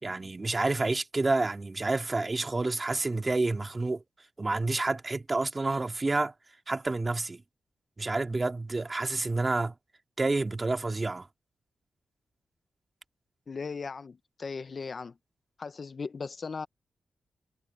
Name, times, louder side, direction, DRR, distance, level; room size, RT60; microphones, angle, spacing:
voice 1, 0.0-4.0 4.4-7.4 8.0-9.7 10.2-11.3, right 3 dB, 30° right, 2.3 m, -29 dB
voice 2, 13.5-15.1 15.6-16.7, left 5 dB, 45° left, 0.6 m, -37 dB
cardioid pair, 85°, 0 cm